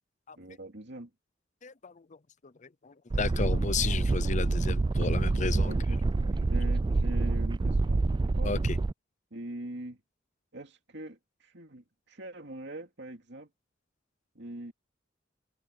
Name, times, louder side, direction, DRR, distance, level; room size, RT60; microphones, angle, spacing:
voice 1, 0.4-1.1 5.7-8.6 9.3-10.0 10.5-13.5 14.3-14.7, right 1 dB, 65° right, 2.7 m, -42 dB
voice 2, 1.6-2.1 2.4-5.7 8.4-8.8, left 4 dB, 40° left, 0.6 m, -33 dB
sound 1, 3.1-8.9, right 3 dB, 25° right, 0.3 m, -27 dB
head